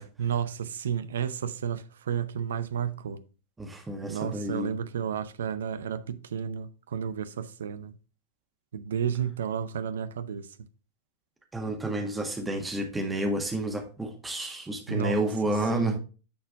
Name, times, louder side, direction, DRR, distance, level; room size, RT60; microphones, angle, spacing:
voice 1, 0.2-3.2 4.1-8.0 8.7-10.6 14.9-16.0, right 8 dB, 65° right, 0.6 m, -32 dB
voice 2, 3.6-4.7 11.5-15.9, right 1 dB, 10° right, 1.7 m, -30 dB
10.0 x 4.4 x 3.6 m
figure-of-eight pair, 90°, 0 cm